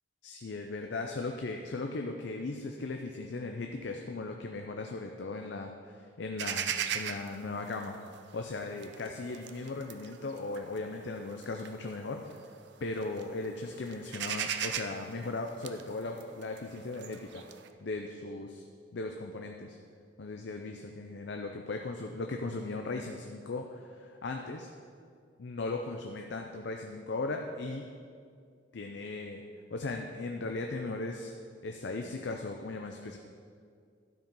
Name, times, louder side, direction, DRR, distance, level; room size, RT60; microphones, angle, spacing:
voice 1, 0.2-8.0 8.3-12.4 12.8-17.4 17.8-18.7 18.9-19.8 20.2-24.7 25.4-27.9 28.7-29.4 29.7-31.3 31.6-33.2, left 3 dB, 60° left, 3 dB, 0.5 m, -37 dB
sound 1, 6.4-12.6 12.9-13.5 13.7-17.7, right 8 dB, 60° right, 0.5 m, -38 dB
12.0 x 4.9 x 5.4 m, 2.2 s
head